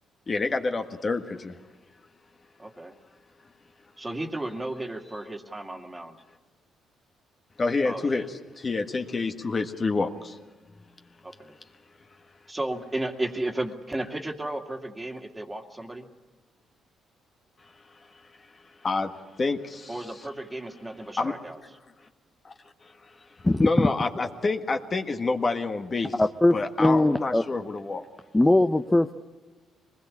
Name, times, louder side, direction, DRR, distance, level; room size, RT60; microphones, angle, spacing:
voice 1, 0.3-1.6 7.6-10.4 17.6-17.7 18.5-20.0 21.2-21.3 22.4-22.5 22.8-26.1 26.5-28.1, left 3 dB, 35° left, 6 dB, 1.6 m, -28 dB
voice 2, 2.6-2.9 4.0-6.2 7.8-8.3 11.2-11.5 12.5-16.1 19.9-21.6, right 1 dB, 15° right, 5 dB, 2.3 m, -34 dB
voice 3, 23.4-23.9 26.2-27.4 28.3-29.1, left 2 dB, 15° left, 8 dB, 0.7 m, -21 dB
24.0 x 20.5 x 8.6 m, 1.3 s
cardioid pair, 90°, 0 cm